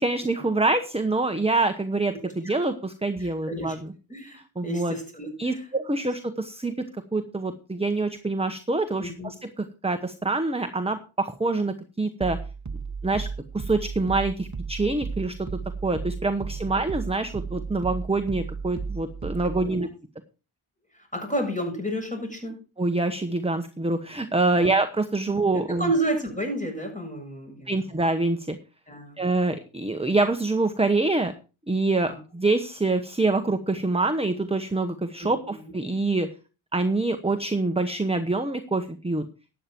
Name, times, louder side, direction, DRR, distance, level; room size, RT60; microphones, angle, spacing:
voice 1, 0.0-3.9 4.6-5.0 5.4-6.8 7.1-9.3 9.8-12.4 13.0-13.3 13.5-15.3 15.8-19.9 22.8-25.9 27.7-28.6 29.2-31.3 31.7-36.3 36.7-39.3, right 2 dB, 10° right, 9 dB, 1.0 m, -25 dB
voice 2, 3.2-3.8 4.1-5.7 9.0-9.3 16.6-16.7 19.6-19.9 20.9-22.6 24.6-24.7 25.7-27.8 28.9-29.2 32.1-32.2 35.2-35.3 35.6-35.7, right 1 dB, 15° left, 1 dB, 7.2 m, -31 dB
sound 1, 12.2-19.7, right 5 dB, 35° right, 1.1 m, -34 dB
12.5 x 9.1 x 4.5 m, 0.33 s
cardioid pair, 50°, 49 cm